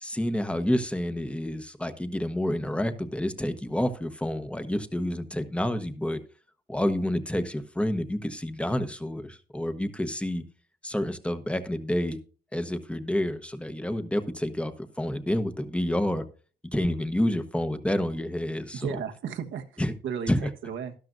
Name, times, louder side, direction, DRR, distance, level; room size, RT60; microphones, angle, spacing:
voice 1, 0.0-6.2 6.7-10.4 10.8-12.2 12.5-14.7 15.0-16.2 16.7-19.0 19.8-19.9 20.3-20.4, left 1 dB, 5° left, 10 dB, 1.1 m, -29 dB
voice 2, 18.7-20.9, right 7 dB, 80° right, 5 dB, 1.3 m, -35 dB
12.5 x 12.0 x 2.6 m, 0.38 s
cardioid pair, 90°, 20 cm